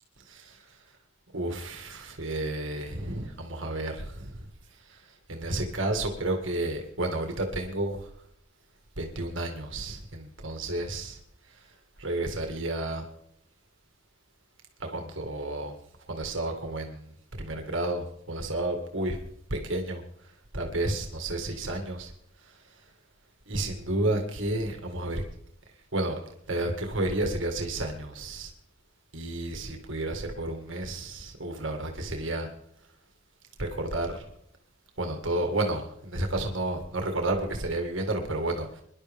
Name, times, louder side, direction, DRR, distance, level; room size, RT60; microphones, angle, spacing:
voice 1, 0.3-0.6 1.3-4.5 4.9-5.0 5.3-8.1 9.0-11.2 12.0-13.0 14.8-15.7 16.1-19.2 19.5-20.0 20.5-22.1 23.5-25.2 25.9-26.2 26.5-28.5 29.1-32.5 33.6-34.2 35.0-38.8, right 2 dB, 90° right, 4 dB, 1.9 m, -31 dB
23.0 x 11.0 x 3.6 m, 0.71 s
head